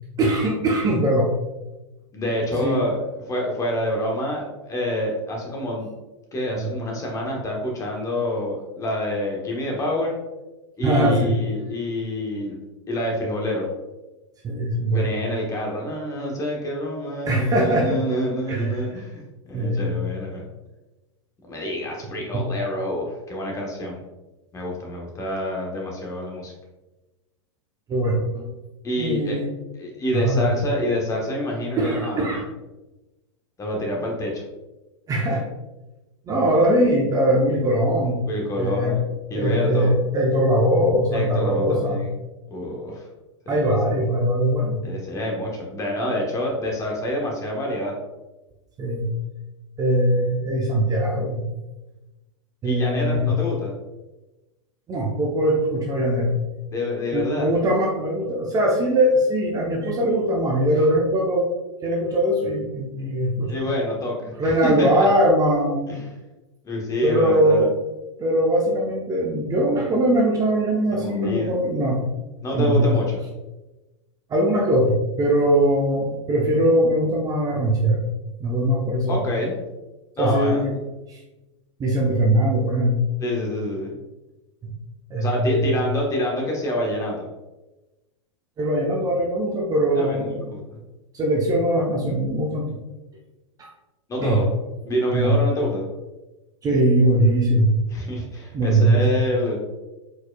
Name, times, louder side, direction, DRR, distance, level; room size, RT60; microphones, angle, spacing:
voice 1, 0.2-1.3 2.6-2.8 6.6-6.7 10.8-11.3 14.4-15.1 17.3-18.0 18.5-18.7 19.5-19.9 22.3-22.4 27.9-28.4 29.0-29.5 30.1-30.5 31.8-32.4 35.1-35.4 36.3-38.2 38.6-38.9 39.3-42.1 43.5-44.8 48.8-49.1 49.8-51.5 52.6-53.3 54.9-56.3 57.1-61.5 61.8-63.6 64.4-66.0 67.0-67.7 68.2-72.1 72.5-72.9 74.3-78.1 78.4-79.2 80.2-80.7 81.1-81.2 81.8-83.0 84.6-84.7 85.1-85.8 88.6-90.4 91.1-92.8 93.6-93.7 94.2-94.4 95.1-95.3 96.6-97.8 98.5-99.2, right 1 dB, 20° right, -1 dB, 0.7 m, -21 dB
voice 2, 2.1-3.0 3.2-5.9 6.3-10.1 10.8-12.6 12.9-13.7 14.9-19.2 19.5-20.4 21.5-24.0 24.5-26.5 28.8-29.4 29.7-32.3 33.6-34.4 38.3-39.0 39.3-39.9 41.1-42.1 42.5-43.1 43.4-43.8 44.8-47.9 52.6-53.7 56.7-57.5 63.5-65.1 65.9-66.1 66.6-67.7 70.9-71.5 72.4-73.2 79.1-79.6 80.2-80.7 83.2-83.9 85.2-87.3 90.0-90.6 94.1-94.5 94.8-95.8 97.9-99.6, left 1 dB, 20° left, -1 dB, 1.2 m, -27 dB
4.8 x 4.0 x 2.3 m, 1.1 s
hypercardioid pair, 100°, 16 cm